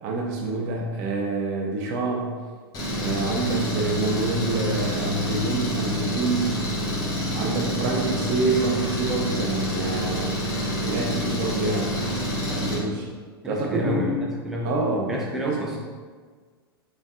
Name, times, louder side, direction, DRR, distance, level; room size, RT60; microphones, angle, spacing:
voice 1, 0.0-2.4 3.0-6.6 7.3-10.3 10.8-12.0 12.5-13.1 13.4-14.2 14.6-15.8, right 3 dB, 45° right, 0 dB, 0.8 m, -27 dB
Engine, 2.7-12.8, equal, 30° left, 1.4 m, -27 dB
voice 2, 13.4-14.7 15.1-15.8, left 1 dB, 5° right, -3 dB, 0.4 m, -30 dB
5.2 x 3.3 x 2.5 m, 1.5 s
figure-of-eight pair, 95°, 13 cm